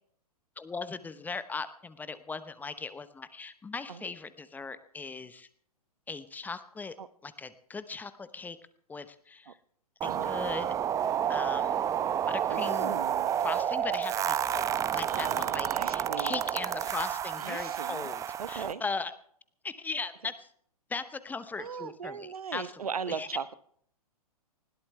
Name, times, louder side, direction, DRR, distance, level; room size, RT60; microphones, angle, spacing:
voice 1, 0.6-5.5 6.1-6.9 7.2-8.6 8.9-9.6 10.0-10.7 11.3-11.8 12.3-13.0 13.4-19.1 19.6-20.5 20.9-23.3, left 4 dB, 10° left, 13 dB, 0.9 m, -38 dB
sound 1, 10.0-18.7, right 9 dB, 15° right, 0.8 m, -30 dB
voice 2, 12.5-13.3 15.0-16.4 17.4-18.1 18.4-18.8 21.6-23.5, right 6 dB, 70° right, 14 dB, 1.2 m, -38 dB
20.0 x 17.5 x 3.3 m, 0.62 s
figure-of-eight pair, 110°, 20 cm